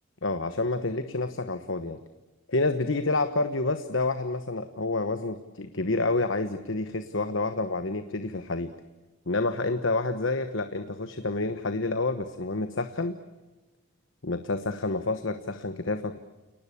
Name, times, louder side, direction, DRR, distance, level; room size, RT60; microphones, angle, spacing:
voice 1, 0.2-2.0 2.5-8.7 9.3-13.2 14.2-16.2, left 2 dB, 65° left, 9 dB, 1.1 m, -28 dB
30.0 x 19.0 x 8.4 m, 1.2 s
head